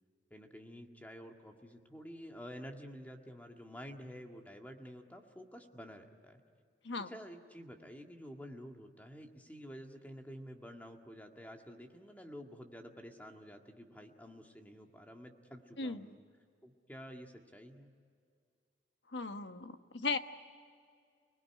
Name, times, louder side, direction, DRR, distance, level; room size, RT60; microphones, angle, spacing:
voice 1, 0.3-6.4 7.0-16.2 16.6-17.9, equal, 10° left, 3 dB, 1.9 m, -50 dB
voice 2, 19.1-20.2, left 4 dB, 70° left, 8 dB, 1.2 m, -37 dB
29.5 x 20.0 x 9.9 m, 2.2 s
head